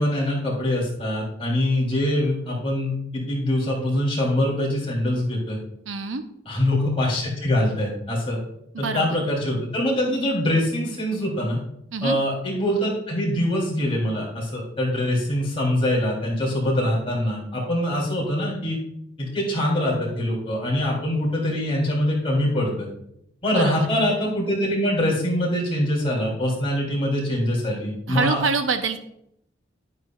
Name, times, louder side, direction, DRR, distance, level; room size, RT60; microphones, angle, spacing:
voice 1, 0.0-5.6 6.4-8.4 8.8-11.6 12.0-18.8 19.2-22.9 23.4-28.4, left 1 dB, 30° left, -4 dB, 3.4 m, -24 dB
voice 2, 5.9-6.2 8.7-9.2 11.9-12.2 23.5-23.9 28.1-29.0, right 4 dB, 90° right, 7 dB, 0.8 m, -25 dB
11.0 x 9.3 x 2.4 m, 0.76 s
head